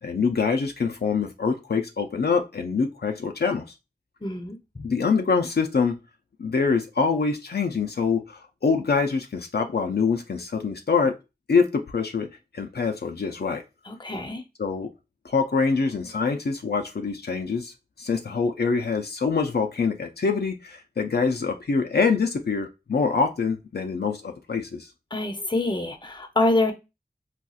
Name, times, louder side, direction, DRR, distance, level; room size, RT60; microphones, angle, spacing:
voice 1, 0.0-3.7 4.8-6.0 6.4-11.2 11.5-12.3 12.5-13.6 14.6-14.9 15.2-24.9, left 5 dB, 75° left, 0.4 m, -25 dB
voice 2, 4.2-4.9 13.9-14.4 25.1-26.7, left 2 dB, 25° left, 0.6 m, -26 dB
4.1 x 2.3 x 2.3 m
wide cardioid pair, 45°, 17 cm